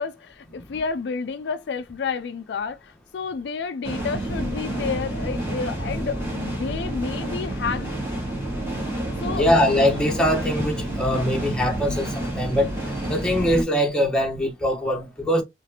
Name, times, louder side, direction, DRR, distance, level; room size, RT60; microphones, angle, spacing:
voice 1, 0.0-8.0 9.2-9.5, left 5 dB, 70° left, 0.4 m, -30 dB
sound 1, 3.8-13.6, right 1 dB, 15° right, 1.9 m, -29 dB
voice 2, 9.3-12.7 13.1-15.4, equal, 5° left, 1.1 m, -22 dB
4.1 x 3.0 x 2.8 m
head